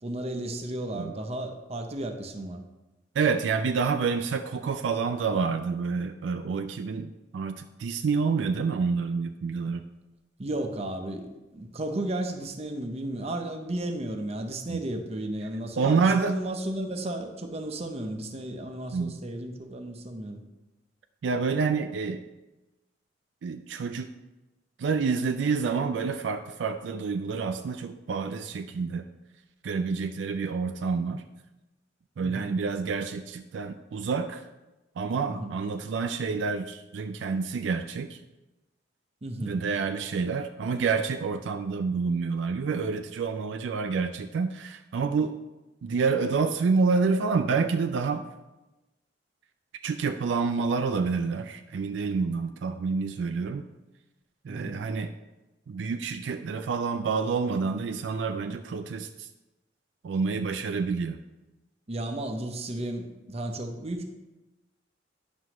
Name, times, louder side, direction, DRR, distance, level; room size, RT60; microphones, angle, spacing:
voice 1, 0.0-2.6 10.4-20.4 32.2-32.5 35.3-35.6 39.2-39.6 54.5-54.8 61.9-64.1, right 1 dB, 35° right, 5 dB, 0.7 m, -34 dB
voice 2, 3.2-9.8 14.7-14.8 15.8-16.4 18.9-19.2 21.2-22.2 23.4-24.1 24.8-29.1 29.6-31.2 32.2-34.5 35.0-38.2 39.4-45.3 45.8-48.2 49.8-53.7 54.4-55.1 55.7-59.3 60.0-61.2, right 5 dB, 75° right, 7 dB, 0.4 m, -28 dB
9.4 x 6.1 x 3.0 m, 1.0 s
head